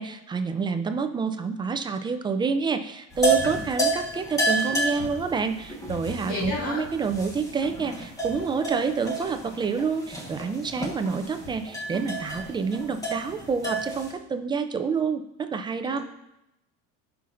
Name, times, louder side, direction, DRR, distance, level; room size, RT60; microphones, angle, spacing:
voice 1, 0.0-16.0, right 5 dB, 15° right, 8 dB, 0.3 m, -28 dB
sound 1, 3.1-14.1, right 2 dB, 10° left, 1.3 m, -30 dB
voice 2, 6.2-6.9 15.8-16.0, left 3 dB, 40° left, -5 dB, 2.6 m, -31 dB
15.0 x 5.7 x 2.5 m, 0.85 s
cardioid pair, 155°, 30 cm